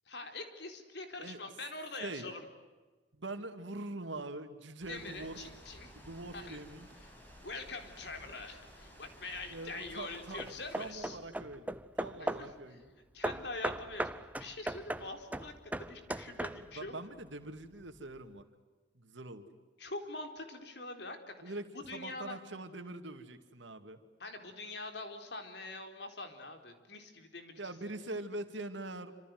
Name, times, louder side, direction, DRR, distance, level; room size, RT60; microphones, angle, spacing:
voice 1, 0.1-2.5 4.9-5.9 6.3-6.6 7.0-7.2 7.4-11.2 12.2-12.8 13.1-14.1 14.4-15.5 15.8-17.0 19.8-21.6 21.9-22.4 24.2-27.7, left 2 dB, 65° left, 6 dB, 4.2 m, -44 dB
voice 2, 3.1-5.4 5.9-6.9 9.5-12.9 16.8-18.4 18.9-19.5 21.4-24.0 27.6-29.1, right 2 dB, 85° right, 7 dB, 2.5 m, -43 dB
sound 1, 4.8-10.9, equal, 10° left, 7.5 m, -55 dB
Hammer / Wood, 9.0-9.5 10.1-12.6 13.2-16.9, right 1 dB, 10° right, 0.8 m, -39 dB
27.5 x 26.5 x 7.9 m, 1.3 s
head